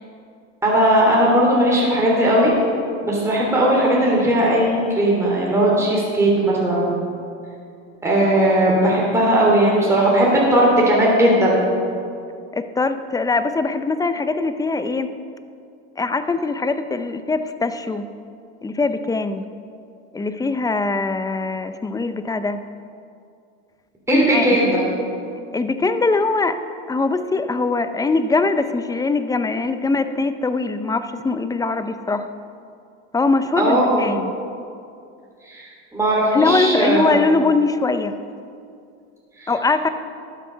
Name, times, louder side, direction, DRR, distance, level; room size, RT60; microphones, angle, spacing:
voice 1, 0.6-2.5 3.0-6.9 8.0-11.6 24.1-24.8 33.6-34.1 35.5-35.7 35.9-37.2 39.4-39.5, right 1 dB, 10° right, -5 dB, 3.1 m, -17 dB
voice 2, 12.5-15.1 16.0-18.1 18.6-19.4 20.1-22.6 24.1-24.5 25.5-26.6 26.9-32.3 33.1-34.3 36.3-38.1 39.5-39.9, left 3 dB, 10° left, 10 dB, 0.6 m, -21 dB
12.5 x 7.7 x 6.8 m, 2.4 s
supercardioid pair, 115°, 29 cm